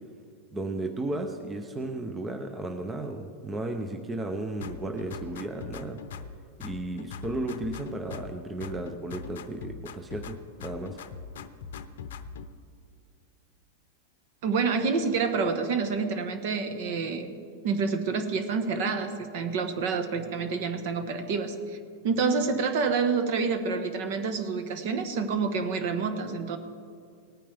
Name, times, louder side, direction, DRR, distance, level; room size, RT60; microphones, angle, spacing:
voice 1, 0.5-6.0 6.6-11.0, right 2 dB, 10° right, 5 dB, 0.6 m, -34 dB
sound 1, 4.6-6.4 6.6-8.4 8.6-10.4 10.6-12.5, left 6 dB, 80° left, 0.7 m, -41 dB
voice 2, 14.4-17.4 17.6-21.8 22.0-26.6, right 5 dB, 55° right, 8 dB, 1.3 m, -28 dB
19.0 x 9.1 x 3.4 m, 2.2 s
supercardioid pair, 150°, 0 cm